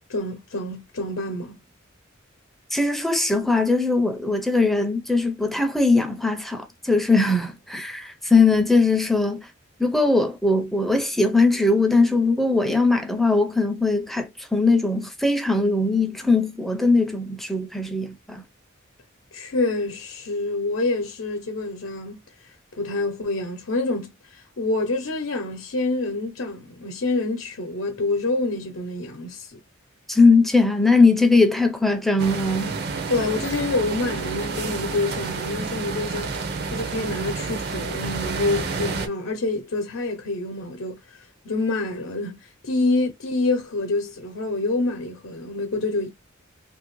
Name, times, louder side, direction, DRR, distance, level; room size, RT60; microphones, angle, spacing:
voice 1, 0.1-1.6 19.3-22.2 22.8-29.6 33.1-36.4 36.7-41.0 41.4-46.1, left 2 dB, 70° left, 0.7 m, -27 dB
voice 2, 2.7-9.5 9.8-18.4 30.1-32.8, left 3 dB, ahead, 0.5 m, -20 dB
sound 1, 32.2-39.1, right 4 dB, 50° right, 0.6 m, -29 dB
2.8 x 2.6 x 3.0 m
head